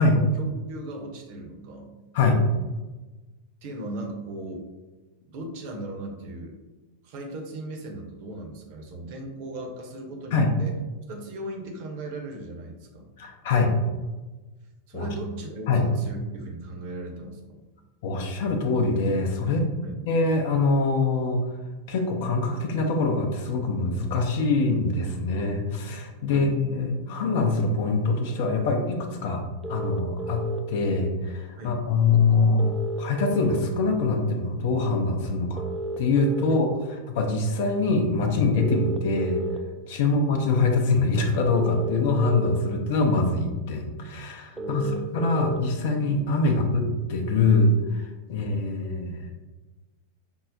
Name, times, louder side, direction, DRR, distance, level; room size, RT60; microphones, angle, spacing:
voice 1, 0.0-1.9 3.6-4.6 5.3-6.5 7.0-10.8 11.1-13.1 14.9-17.6 19.8-20.0 26.3-26.6 31.6-31.8 40.0-40.2 44.6-45.5 48.3-48.7, right 2 dB, 50° right, 1 dB, 0.7 m, -38 dB
voice 2, 13.2-13.7 14.9-15.1 15.7-15.8 18.0-19.7 20.1-21.4 21.9-29.4 29.7-35.6 36.0-36.7 37.1-39.4 39.9-44.8 45.1-49.3, left 3 dB, 50° left, 3 dB, 0.6 m, -24 dB
sound 1, 29.6-30.6 32.6-33.6 35.6-36.6 38.6-39.6 41.6-42.6 44.6-45.6, right 2 dB, 5° right, 0.3 m, -32 dB
5.4 x 2.0 x 2.6 m, 1.2 s
figure-of-eight pair, 90°, 0 cm